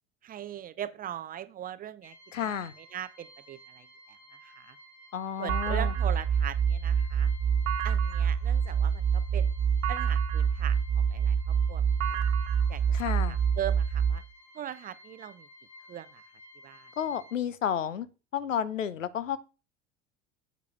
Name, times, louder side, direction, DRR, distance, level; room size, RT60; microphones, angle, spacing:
voice 1, 0.2-2.1 2.4-2.6 2.9-3.9 4.4-4.8 5.4-7.3 7.8-9.5 9.9-10.8 11.1-12.2 12.7-14.2 14.5-15.5 15.9-16.2 16.6-16.9, right 11 dB, 25° right, 0.5 m, -40 dB
sound 1, 2.0-17.4, left 1 dB, 65° left, 1.8 m, -54 dB
voice 2, 2.3-2.7 5.1-5.9 12.9-13.4 17.0-18.1 18.3-19.4, left 8 dB, 80° left, 0.7 m, -31 dB
sound 2, 5.5-14.2, right 7 dB, 45° right, 1.2 m, -26 dB
8.2 x 8.1 x 3.1 m
figure-of-eight pair, 75°, 38 cm